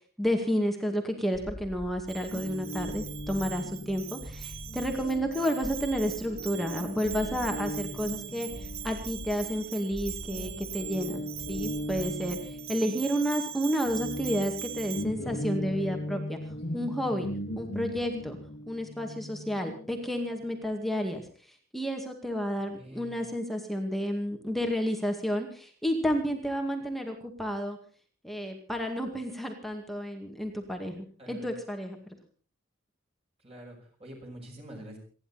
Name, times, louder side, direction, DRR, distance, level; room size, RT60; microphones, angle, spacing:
voice 1, 0.2-11.2 11.5-12.4 12.7-16.4 16.7-17.3 17.6-18.4 18.7-21.3 21.7-27.8 28.2-32.0, equal, ahead, 3 dB, 2.1 m, -31 dB
sound 1, 1.3-12.7, equal, 25° left, 2.6 m, -45 dB
Bell, 2.1-15.0, right 13 dB, 75° right, 1.1 m, -42 dB
Guitar, 2.3-10.0 10.3-20.7, left 1 dB, 50° left, 2.2 m, -39 dB
voice 2, 22.7-23.3 31.2-31.5 33.4-35.0, right 1 dB, 30° right, 1 dB, 5.7 m, -46 dB
28.5 x 11.0 x 4.2 m, 0.41 s
head